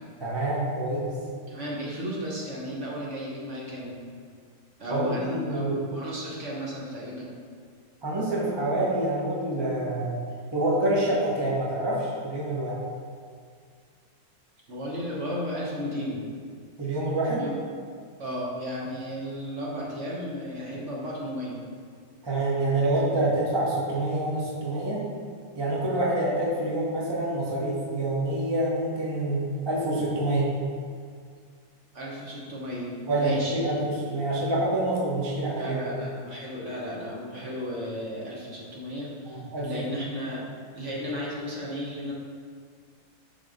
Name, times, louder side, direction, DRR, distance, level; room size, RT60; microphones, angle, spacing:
voice 1, 0.2-1.1 4.9-5.8 8.0-10.2 10.5-12.8 16.8-17.5 22.2-25.0 25.6-30.5 33.1-35.8 39.2-39.8 40.8-40.9, right 1 dB, 25° right, -5 dB, 0.6 m, -27 dB
voice 2, 1.5-3.9 4.8-7.3 14.7-16.2 17.4-17.5 18.2-21.6 31.9-33.6 35.6-40.4 40.7-42.1, equal, 45° right, -5 dB, 1.1 m, -34 dB
5.9 x 3.6 x 4.9 m, 2.1 s
omnidirectional pair, 2.1 m